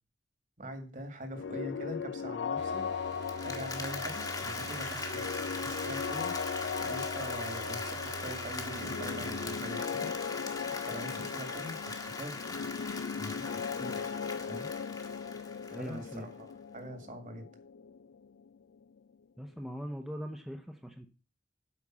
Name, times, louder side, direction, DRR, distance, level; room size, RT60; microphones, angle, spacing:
voice 1, 0.6-2.9 3.4-5.3 5.6-6.3 6.8-10.5 10.9-12.4 13.2-13.6 14.5-14.7 15.8-17.5, equal, 45° right, 7 dB, 2.1 m, -43 dB
sound 1, 1.3-19.0, left 6 dB, 75° left, 0.4 m, -38 dB
sound 2, 2.6-9.6, right 4 dB, 65° right, 0.5 m, -45 dB
Applause, 3.1-16.1, left 3 dB, 20° left, 1.2 m, -40 dB
voice 2, 15.7-16.3 19.4-21.1, equal, ahead, 3 dB, 0.8 m, -41 dB
8.4 x 5.5 x 7.4 m, 0.34 s
head